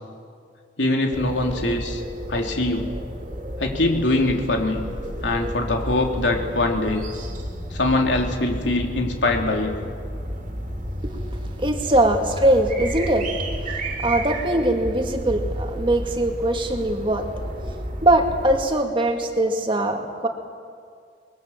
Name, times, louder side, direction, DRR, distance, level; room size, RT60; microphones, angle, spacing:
voice 1, 0.8-2.0 2.3-2.9 3.6-4.9 5.2-7.1 7.7-9.7, left 2 dB, 85° left, 2 dB, 3.1 m, -23 dB
sound 1, 1.1-18.6, right 1 dB, 45° right, 2.8 m, -32 dB
voice 2, 11.6-13.3 13.6-17.3 18.0-20.3, right 1 dB, 30° right, 4 dB, 2.1 m, -21 dB
24.5 x 21.5 x 7.3 m, 2.2 s
head